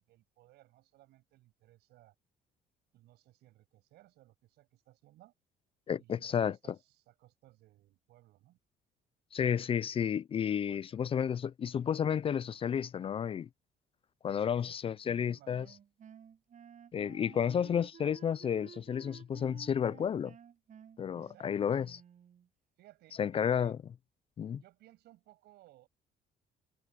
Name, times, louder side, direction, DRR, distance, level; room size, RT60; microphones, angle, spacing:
voice 1, 0.0-2.1 2.9-5.3 6.0-8.6 10.7-10.8 14.3-15.8 17.3-17.8 21.1-21.8 22.8-23.7 24.6-25.9, right 16 dB, 80° right, 7.0 m, -61 dB
voice 2, 5.9-6.6 9.3-13.5 14.2-15.7 16.9-20.3 21.0-22.0 23.2-23.8 24.4-24.6, left 8 dB, 35° left, 0.4 m, -31 dB
Wind instrument woodwind instrument, 15.0-22.5, right 8 dB, 45° right, 7.0 m, -54 dB
cardioid pair, 110°, 17 cm